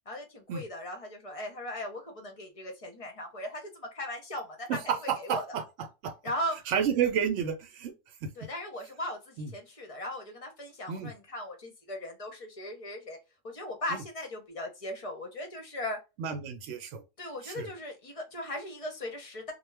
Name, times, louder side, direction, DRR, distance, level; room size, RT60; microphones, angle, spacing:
voice 1, 0.1-4.8 5.2-5.6 6.2-6.6 8.4-13.2 13.4-16.0 17.2-19.5, left 1 dB, 35° left, 0.6 m, -38 dB
voice 2, 4.7-6.1 6.7-7.9 9.4-9.5 10.9-11.1 13.9-14.0 16.2-17.0 17.4-17.7, right 8 dB, 80° right, 0.9 m, -31 dB
2.3 x 2.1 x 3.2 m
omnidirectional pair, 1.3 m